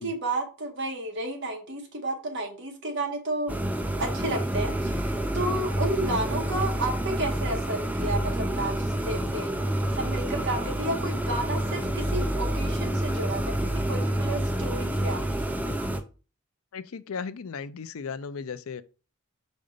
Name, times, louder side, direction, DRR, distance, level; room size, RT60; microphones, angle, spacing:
voice 1, 0.0-3.5 4.0-9.6 10.0-15.2 15.4-15.5, right 2 dB, 55° right, 1.6 m, -32 dB
sound 1, 3.5-16.0, right 1 dB, 5° right, 0.5 m, -28 dB
voice 2, 16.7-18.8, left 5 dB, 75° left, 0.5 m, -36 dB
5.2 x 3.9 x 5.1 m
head